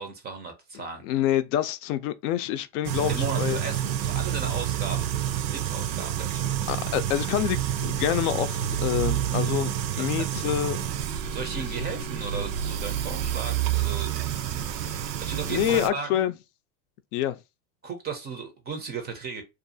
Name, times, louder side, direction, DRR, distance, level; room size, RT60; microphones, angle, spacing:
voice 1, 0.0-1.0 3.1-5.1 5.5-6.5 10.2-10.3 11.2-14.2 14.8-16.3 17.8-19.4, right 5 dB, 20° right, 0.4 m, -36 dB
voice 2, 1.0-3.6 6.7-10.8 15.5-16.3 17.1-17.4, left 11 dB, 65° left, 0.5 m, -27 dB
sound 1, 2.8-15.9, right 10 dB, 85° right, 0.6 m, -28 dB
2.5 x 2.4 x 2.6 m
hypercardioid pair, 110°, 49 cm